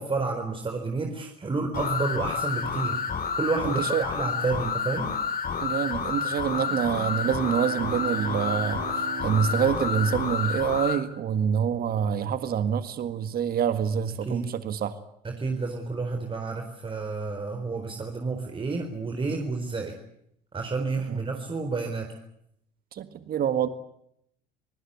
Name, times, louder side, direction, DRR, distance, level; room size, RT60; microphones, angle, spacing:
voice 1, 0.0-3.0 3.4-5.1 14.2-14.5 15.2-20.0 20.5-22.2, right 3 dB, 25° right, 4 dB, 4.2 m, -30 dB
sound 1, 1.7-11.0, left 6 dB, 45° left, 4.5 m, -29 dB
voice 2, 3.6-4.0 5.6-8.8 9.2-14.9 21.1-21.2 22.9-23.7, right 8 dB, 45° right, 11 dB, 1.7 m, -26 dB
Bowed string instrument, 6.6-11.6, right 12 dB, 60° right, 2.2 m, -40 dB
27.0 x 20.0 x 8.2 m, 0.75 s
hypercardioid pair, 70°, 21 cm